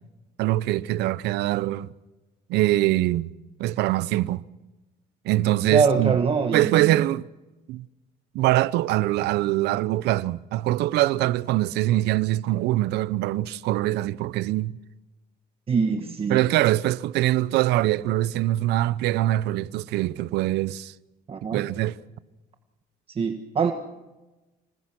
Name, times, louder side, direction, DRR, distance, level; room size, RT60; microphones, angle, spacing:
voice 1, 0.4-1.9 2.5-3.3 3.6-4.4 5.2-6.2 6.5-7.3 7.7-7.8 8.3-14.8 16.3-20.9 21.4-22.0, right 15 dB, 85° right, 0.7 m, -23 dB
voice 2, 5.7-7.0 15.7-16.4 21.3-21.6 23.1-23.7, right 5 dB, 35° right, 1.5 m, -23 dB
26.5 x 20.0 x 6.1 m
cardioid pair, 110°, 17 cm